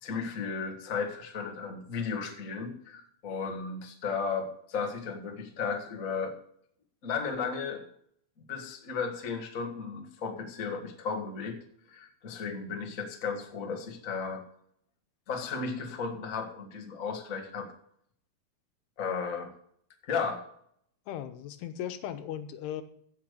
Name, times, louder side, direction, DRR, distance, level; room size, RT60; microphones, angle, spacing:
voice 1, 0.0-6.3 7.0-7.8 8.5-11.6 11.9-14.4 15.3-17.7 19.0-19.5 20.0-20.4, left 5 dB, 50° left, 3 dB, 1.0 m, -34 dB
voice 2, 21.1-22.8, left 10 dB, 90° left, 9 dB, 3.0 m, -37 dB
16.0 x 5.7 x 6.6 m, 0.66 s
omnidirectional pair, 4.6 m